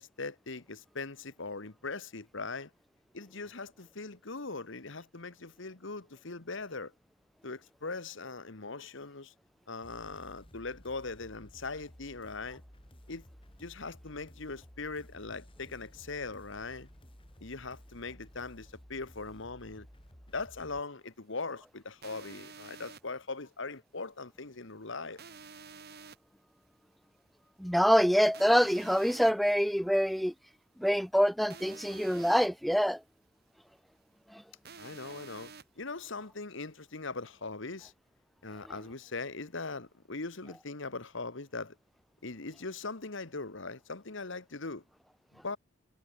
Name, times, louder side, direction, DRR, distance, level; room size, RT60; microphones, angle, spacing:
voice 1, 0.0-2.7 3.1-6.9 7.4-9.3 9.7-12.6 13.1-13.2 13.6-16.9 17.4-19.9 20.3-25.2 34.8-37.9 38.4-41.8 42.2-44.8 45.4-45.6, left 3 dB, 60° left, 1.5 m, -40 dB
sound 1, 9.8-20.8, equal, 25° left, 5.1 m, -55 dB
sound 2, 22.0-23.0 25.2-26.2 28.3-29.3 31.5-32.5 34.6-35.6, right 5 dB, 50° right, 2.1 m, -49 dB
voice 2, 27.6-30.3 30.8-33.0 34.3-34.4, equal, ahead, 0.7 m, -25 dB
head